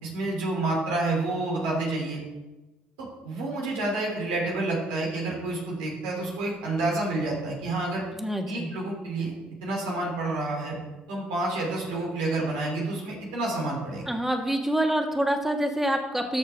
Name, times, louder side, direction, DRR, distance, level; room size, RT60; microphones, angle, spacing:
voice 1, 0.0-2.2 3.0-8.0 8.5-9.3 9.6-10.8 11.1-14.0, right 2 dB, 90° right, -3 dB, 3.1 m, -29 dB
voice 2, 8.1-8.7 14.1-16.4, right 1 dB, 5° right, 3 dB, 1.7 m, -26 dB
13.5 x 6.4 x 3.6 m, 1.1 s
hypercardioid pair, 65°, 4 cm